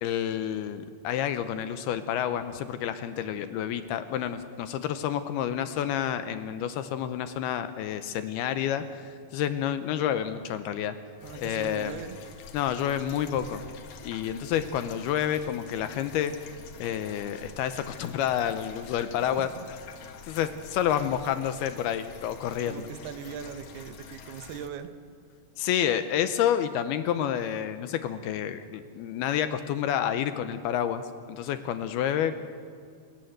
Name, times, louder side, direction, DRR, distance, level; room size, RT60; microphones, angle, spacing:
voice 1, 0.0-11.0 11.4-11.9 12.5-13.7 14.0-16.5 16.8-19.5 20.2-22.7 25.6-31.0 31.3-32.3, left 10 dB, 75° left, 10 dB, 2.6 m, -29 dB
sound 1, 11.2-24.7, left 5 dB, 60° left, 2.3 m, -47 dB
voice 2, 11.2-12.2 19.2-19.7 22.6-24.9, right 8 dB, 75° right, 9 dB, 2.8 m, -40 dB
29.0 x 17.5 x 8.0 m, 2.2 s
omnidirectional pair, 5.0 m